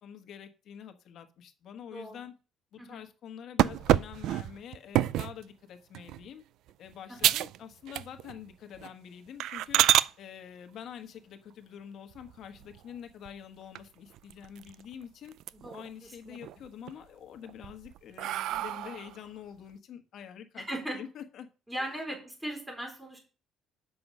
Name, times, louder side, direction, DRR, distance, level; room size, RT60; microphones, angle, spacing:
voice 1, 0.0-2.3 2.7-6.4 6.8-9.8 10.2-15.3 15.7-20.6 20.9-21.5 21.8-21.9, left 9 dB, 60° left, 7 dB, 1.3 m, -46 dB
voice 2, 1.9-2.3 2.8-3.0 7.2-7.3 15.5-16.4 18.5-19.0 20.6-21.0 21.7-23.2, right 1 dB, 10° right, 0 dB, 3.9 m, -39 dB
sound 1, 3.6-5.4 5.9-6.3 6.7-6.8 7.2-7.6 7.9-8.4 8.7-8.9 9.4-10.1 12.1-12.8 13.2-13.3 13.7-13.8 14.1-14.9 15.3-15.9 16.3-16.9 17.5-19.2, right 13 dB, 75° right, 0.3 m, -28 dB
7.7 x 6.2 x 5.4 m, 0.36 s
cardioid pair, 110°, 0 cm